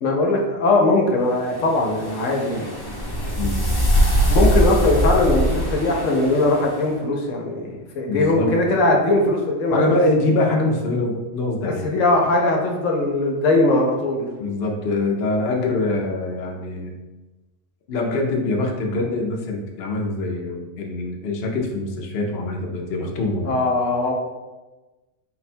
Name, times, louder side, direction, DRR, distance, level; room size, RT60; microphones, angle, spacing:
voice 1, 0.0-2.7 4.3-10.0 11.6-14.3 23.4-24.1, left 2 dB, 85° left, 0 dB, 1.1 m, -20 dB
sound 1, 1.5-6.8, equal, 30° left, 0.5 m, -22 dB
voice 2, 3.2-3.6 8.1-8.6 9.7-11.9 14.4-16.9 17.9-23.6, left 2 dB, 60° left, 0 dB, 0.8 m, -24 dB
4.1 x 2.2 x 4.3 m, 1.2 s
omnidirectional pair, 1.3 m